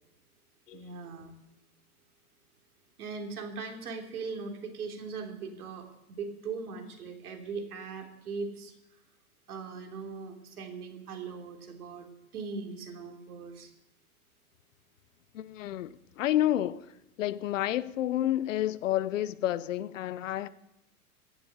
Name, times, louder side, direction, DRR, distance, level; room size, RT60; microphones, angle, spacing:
voice 1, 0.7-1.3 3.0-8.7 9.5-12.1 12.3-13.7, right 4 dB, 75° right, 3.3 m, -39 dB
voice 2, 15.3-16.9 17.2-20.5, left 13 dB, 60° left, 0.8 m, -30 dB
17.0 x 7.3 x 8.9 m
hypercardioid pair, 155°, 45 cm